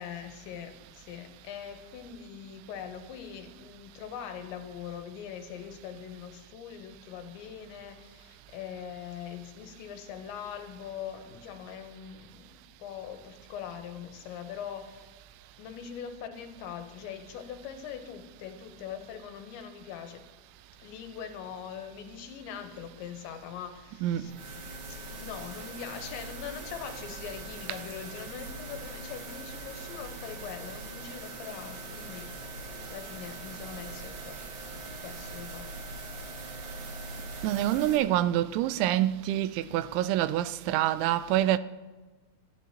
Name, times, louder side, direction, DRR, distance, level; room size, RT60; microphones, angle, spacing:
voice 1, 0.0-15.1 15.6-20.2 20.8-24.3 24.9-32.3 32.9-34.4 35.0-35.7, left 8 dB, 85° left, 3.3 m, -42 dB
sound 1, 24.2-38.0, right 2 dB, 55° right, 3.5 m, -41 dB
voice 2, 37.4-41.6, right 13 dB, 85° right, 2.9 m, -26 dB
25.5 x 10.5 x 3.0 m
omnidirectional pair, 5.2 m